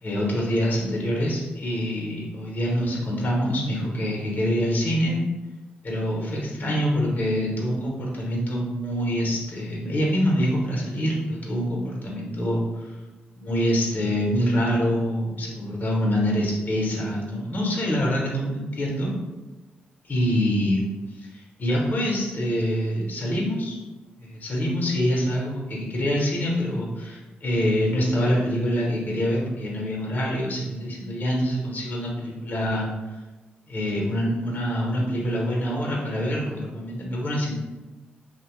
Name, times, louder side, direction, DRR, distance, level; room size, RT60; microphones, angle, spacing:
voice 1, 0.0-5.3 5.8-12.9 13.4-19.1 20.0-20.9 21.1-23.8 24.2-32.9 33.7-37.5, equal, 45° left, -2 dB, 0.7 m, -25 dB
2.7 x 2.0 x 3.0 m, 1.2 s
cardioid pair, 65°, 4 cm